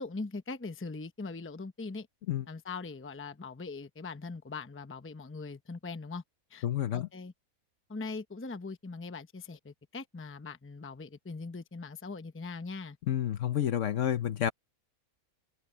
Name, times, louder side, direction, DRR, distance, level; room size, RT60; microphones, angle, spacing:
voice 1, 0.0-2.1 2.5-6.2 6.5-6.7 6.9-7.3 7.9-13.0, left 3 dB, 10° left, 0.7 m, -41 dB
voice 2, 6.6-7.1 13.1-14.5, left 10 dB, 60° left, 1.0 m, -29 dB
omnidirectional pair, 1.6 m